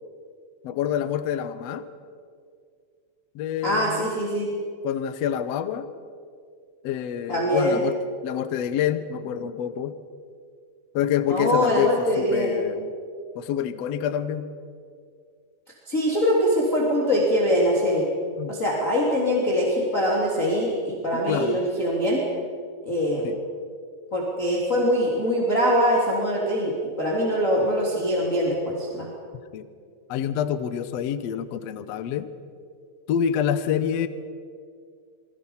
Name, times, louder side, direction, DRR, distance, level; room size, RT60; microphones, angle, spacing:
voice 1, 0.6-1.9 3.3-4.1 4.8-5.9 6.8-8.0 8.2-10.0 10.9-12.9 13.3-14.5 18.4-18.6 21.3-21.6 23.2-23.4 29.5-29.7 30.1-32.3 33.1-34.1, left 9 dB, 75° left, 12 dB, 1.5 m, -27 dB
voice 2, 3.6-4.5 7.3-7.8 11.3-12.5 15.9-18.1 18.5-22.2 22.9-23.3 24.1-29.1, equal, 20° left, -4 dB, 3.3 m, -23 dB
28.0 x 23.5 x 5.7 m, 2.2 s
omnidirectional pair, 4.4 m